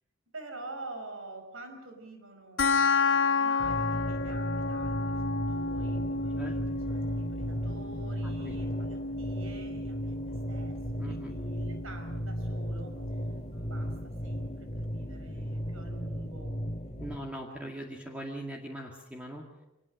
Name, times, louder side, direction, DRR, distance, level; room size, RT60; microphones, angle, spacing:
voice 1, 0.3-5.2 5.5-6.6 6.9-10.8 11.0-13.2 13.5-13.9 14.2-16.6, right 2 dB, 80° right, 6 dB, 5.5 m, -47 dB
sound 1, 2.6-13.6, left 4 dB, 75° left, 1.6 m, -32 dB
sound 2, 3.6-17.2, equal, 35° left, 2.4 m, -35 dB
voice 2, 8.2-8.5 11.0-11.3 17.0-19.4, right 1 dB, 5° right, -1 dB, 2.1 m, -40 dB
25.0 x 20.5 x 6.4 m, 0.94 s
head